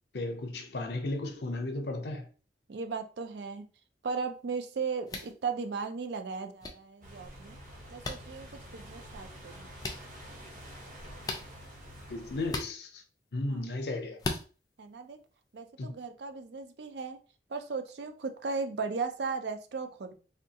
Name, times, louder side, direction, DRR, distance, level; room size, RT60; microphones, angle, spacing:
voice 1, 0.1-2.3 12.1-13.0 13.3-14.2 15.8-15.9, left 2 dB, 65° left, 0.6 m, -34 dB
voice 2, 2.7-3.6 4.0-7.6 7.9-9.7 13.5-13.6 14.8-15.2 15.5-17.2 17.5-20.1, right 4 dB, 70° right, 0.4 m, -36 dB
sound 1, 5.1-5.3 6.6-6.7 8.0-8.2 9.8-10.0 11.2-11.5 12.5-12.7 14.2-14.4, left 2 dB, 20° left, 0.4 m, -34 dB
sound 2, 7.0-12.5, equal, 45° right, 0.9 m, -48 dB
3.5 x 2.3 x 2.8 m
head